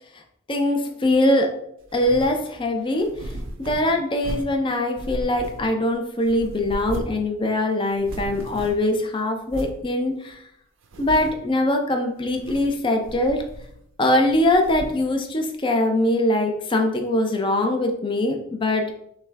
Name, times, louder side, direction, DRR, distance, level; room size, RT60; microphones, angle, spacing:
voice 1, 0.5-1.5 1.9-3.3 3.6-10.4 11.0-13.4 14.0-18.9, left 1 dB, 25° left, 3 dB, 0.5 m, -22 dB
sound 1, 1.9-2.4 3.0-4.6 5.0-5.9 6.2-7.3 7.5-7.6 7.9-8.9 9.5-9.8 10.3-10.4 10.8-11.5 12.2-12.8 13.0-13.9 14.3-15.1, right 1 dB, 70° right, 0.5 m, -36 dB
5.8 x 2.2 x 3.3 m, 0.73 s
head